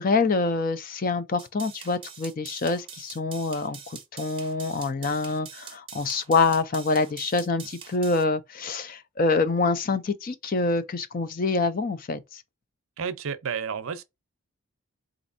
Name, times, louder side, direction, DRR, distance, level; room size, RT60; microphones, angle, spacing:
voice 1, 0.0-12.4, left 3 dB, 40° left, 0.4 m, -26 dB
sound 1, 1.4-8.2, right 7 dB, 25° right, 0.6 m, -44 dB
voice 2, 13.0-14.0, right 6 dB, 75° right, 0.5 m, -31 dB
4.1 x 2.5 x 2.5 m
head